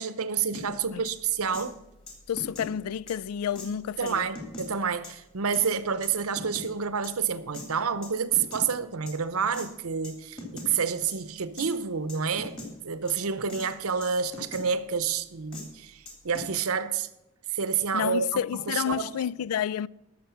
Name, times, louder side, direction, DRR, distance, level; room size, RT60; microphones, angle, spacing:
voice 1, 0.0-1.7 4.0-12.6 12.8-17.1 17.5-19.1, right 6 dB, 80° right, 0.8 m, -29 dB
sound 1, 0.5-0.7 1.0-1.1 1.5-1.7 2.1-2.7 3.1-3.2 3.6-3.7 4.1-4.7 5.0-5.1 5.5-5.7 6.0-6.7 7.0-7.1 7.5-7.7 8.0-8.7 9.1-9.2 9.5-9.7 10.0-10.1 10.4-10.7 11.1-11.2 11.6-11.7 12.1-12.7 13.1-13.2 13.5-13.7 14.0-14.6 15.1-15.2 15.5-15.6 16.1-16.6, left 2 dB, 25° left, 2.9 m, -40 dB
voice 2, 2.3-4.3 17.9-19.9, left 9 dB, 80° left, 0.3 m, -30 dB
13.5 x 6.5 x 7.0 m
head